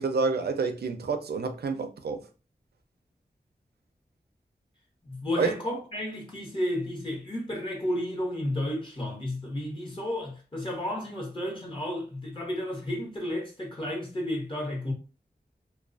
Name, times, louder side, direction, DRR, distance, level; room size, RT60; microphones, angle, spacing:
voice 1, 0.0-2.2 5.4-5.5, right 4 dB, 85° right, 0.4 m, -28 dB
voice 2, 5.0-14.9, left 1 dB, 30° left, 0.9 m, -32 dB
2.3 x 2.2 x 2.4 m
wide cardioid pair, 85°, 16 cm